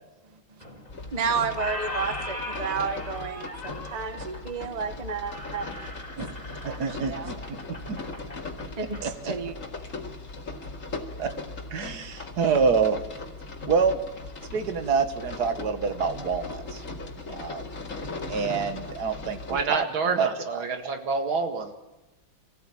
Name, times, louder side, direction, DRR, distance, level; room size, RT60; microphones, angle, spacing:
Squeak, 0.6-1.2 1.4-9.0, left 2 dB, 20° left, 3.3 m, -39 dB
sound 1, 0.9-19.6, left 3 dB, 40° left, 2.5 m, -39 dB
voice 1, 1.1-5.7 6.6-7.4 8.8-9.5, right 5 dB, 25° right, 9 dB, 1.1 m, -31 dB
voice 2, 6.6-7.4 7.7-8.0 9.0-9.1 11.2-11.3 11.7-13.0 13.7-13.9 14.5-16.8 17.3-17.6 18.3-20.3, right 5 dB, 55° right, 8 dB, 2.0 m, -26 dB
voice 3, 19.5-21.8, right 4 dB, 75° right, 5 dB, 2.7 m, -28 dB
24.0 x 15.5 x 8.7 m, 1.0 s
omnidirectional pair, 2.2 m